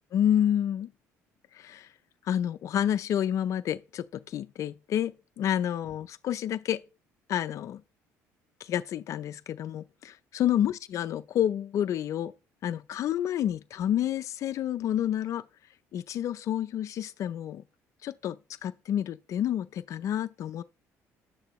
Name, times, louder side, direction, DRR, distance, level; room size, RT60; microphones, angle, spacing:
voice 1, 0.1-0.9 1.5-1.9 2.3-6.8 7.3-7.8 8.6-12.3 12.6-15.4 15.9-17.6 18.0-20.6, left 10 dB, 60° left, 0.5 m, -29 dB
11.0 x 8.7 x 3.1 m
cardioid pair, 100°, 6 cm